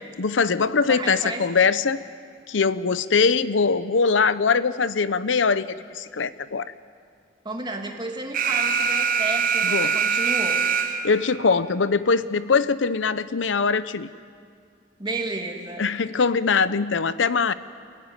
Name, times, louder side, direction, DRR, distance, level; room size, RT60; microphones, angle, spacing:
voice 1, 0.2-2.0 2.5-6.7 9.6-10.0 11.0-14.1 15.8-17.5, left 5 dB, 85° left, 15 dB, 0.7 m, -22 dB
voice 2, 0.9-1.4 7.4-10.6 15.0-15.9, right 2 dB, 25° right, 2 dB, 2.5 m, -32 dB
Alarm, 8.3-11.3, right 6 dB, 50° right, 1.2 m, -23 dB
28.0 x 16.0 x 9.9 m, 2.2 s
head